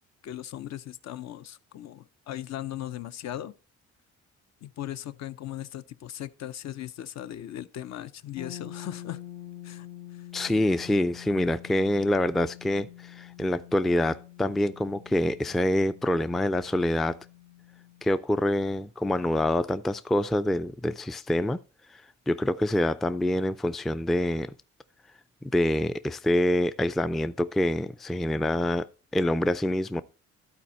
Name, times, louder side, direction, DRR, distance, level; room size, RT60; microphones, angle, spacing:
voice 1, 0.2-3.5 4.6-9.2 9.6-9.9 10.1-10.3, left 12 dB, 60° left, 0.6 m, -38 dB
sound 1, 8.4-18.1, left 12 dB, 85° left, 1.0 m, -46 dB
voice 2, 10.3-17.2 18.0-21.6 21.9-24.5 25.5-30.0, left 1 dB, ahead, 0.3 m, -26 dB
12.0 x 4.3 x 4.2 m
cardioid pair, 90°, 30 cm